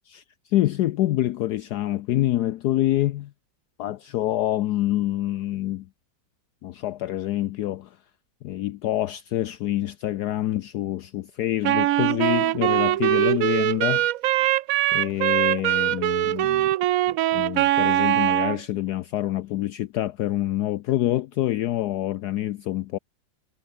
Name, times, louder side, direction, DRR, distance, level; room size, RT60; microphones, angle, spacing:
voice 1, 0.1-3.3 3.8-5.9 6.6-8.0 8.4-14.1 14.9-16.7 17.1-23.0, left 14 dB, 70° left, 1.1 m, -26 dB
Wind instrument woodwind instrument, 11.6-18.6, right 14 dB, 75° right, 0.8 m, -22 dB
omnidirectional pair, 2.0 m